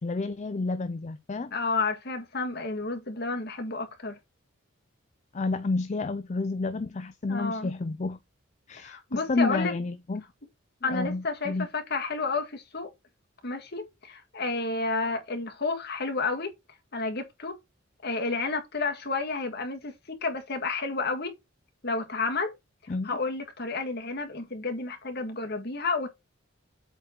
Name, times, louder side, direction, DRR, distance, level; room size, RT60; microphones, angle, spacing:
voice 1, 0.0-1.5 5.3-8.2 8.7-10.2 10.9-11.7 22.9-23.2, left 3 dB, 35° left, 0.5 m, -30 dB
voice 2, 1.5-4.2 7.3-7.7 8.8-9.7 10.8-12.9 13.4-16.5 16.9-17.6 18.0-21.3 21.8-22.6 23.0-26.1, left 3 dB, 55° left, 1.8 m, -31 dB
8.0 x 3.8 x 4.4 m
head